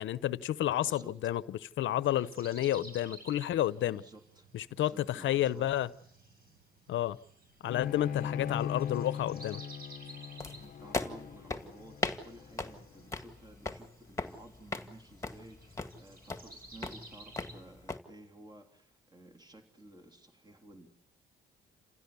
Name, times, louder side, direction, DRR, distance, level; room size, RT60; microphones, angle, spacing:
voice 1, 0.0-4.0 4.5-5.9 6.9-7.2 7.6-9.6, left 12 dB, 75° left, 0.8 m, -31 dB
voice 2, 0.8-1.2 3.9-5.7 8.2-8.5 10.6-20.9, right 1 dB, 20° right, 3.2 m, -54 dB
sound 1, 2.0-17.6, right 2 dB, 50° right, 6.8 m, -55 dB
Bowed string instrument, 7.7-13.0, left 8 dB, 45° left, 0.9 m, -39 dB
sound 2, 10.4-18.0, left 3 dB, 15° left, 2.0 m, -40 dB
29.0 x 16.0 x 8.3 m
cardioid pair, 90°, 20 cm